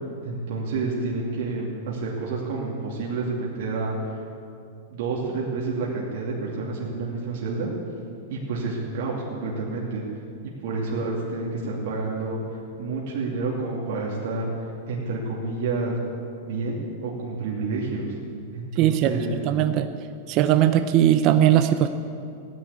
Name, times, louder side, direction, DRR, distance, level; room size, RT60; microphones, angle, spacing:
voice 1, 0.2-4.2 4.9-7.7 8.3-10.0 10.4-15.9 16.4-18.2 18.5-19.4, right 3 dB, 65° right, -4 dB, 2.9 m, -29 dB
voice 2, 18.8-19.1 19.5-19.9 20.3-21.9, right 11 dB, 40° right, 9 dB, 0.7 m, -19 dB
15.5 x 10.5 x 8.4 m, 2.5 s
supercardioid pair, 140°, 0 cm